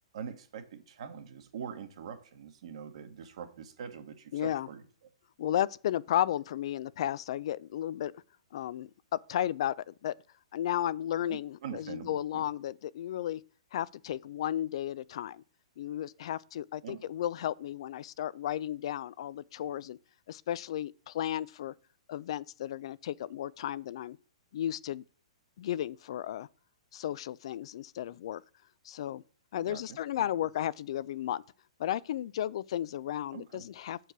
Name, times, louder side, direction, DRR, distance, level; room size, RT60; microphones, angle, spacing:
voice 1, 0.1-4.8 11.3-12.5 16.8-17.0 29.6-30.2 33.3-33.7, right 7 dB, 65° right, 1.4 m, -44 dB
voice 2, 4.3-4.7 5.4-8.1 8.5-8.9 9.3-10.1 10.5-13.4 13.7-15.4 15.8-20.0 20.3-21.7 22.1-24.2 24.5-25.0 25.6-26.5 26.9-28.4 28.8-29.2 29.5-31.4 31.8-34.0, left 11 dB, 60° left, 0.3 m, -34 dB
6.7 x 4.6 x 5.9 m
hypercardioid pair, 150°, 3 cm